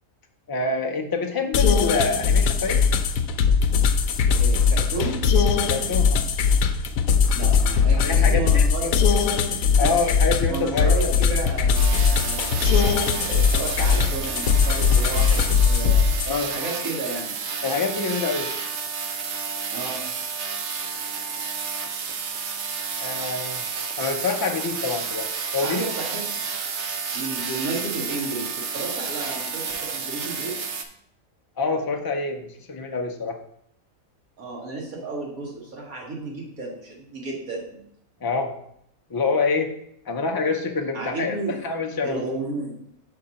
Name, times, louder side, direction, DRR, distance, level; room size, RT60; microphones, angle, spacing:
voice 1, 0.5-2.8 5.7-6.3 8.0-8.9 9.8-11.0 16.3-16.5 17.6-18.5 23.0-23.6 24.0-25.8 31.6-33.4 38.2-38.5 39.1-39.7 40.1-41.4 41.6-42.2, left 4 dB, 35° left, 3 dB, 0.3 m, -26 dB
sound 1, 1.5-16.3, left 6 dB, 75° left, 0.9 m, -20 dB
voice 2, 4.3-5.2 7.3-9.0 9.7-9.9 10.5-16.0 16.5-17.3 19.7-20.0 25.6-26.4 27.1-30.5 34.4-37.8 40.9-41.6 42.0-42.7, right 2 dB, 75° right, -3 dB, 2.3 m, -32 dB
sound 2, 11.7-30.8, right 5 dB, 60° right, 0.9 m, -31 dB
5.8 x 3.8 x 5.7 m, 0.71 s
omnidirectional pair, 1.5 m